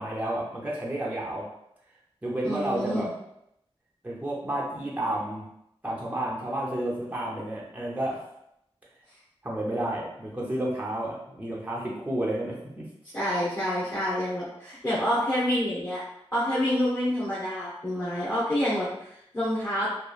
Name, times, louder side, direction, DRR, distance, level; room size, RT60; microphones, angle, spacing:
voice 1, 0.0-1.5 2.2-3.1 4.0-5.5 5.8-8.2 9.4-12.9, right 1 dB, 15° right, -4 dB, 0.6 m, -31 dB
voice 2, 2.4-3.1 13.1-16.0 16.3-19.9, equal, 20° left, -10 dB, 0.9 m, -27 dB
2.9 x 2.4 x 2.3 m, 0.78 s
wide cardioid pair, 70°, 10 cm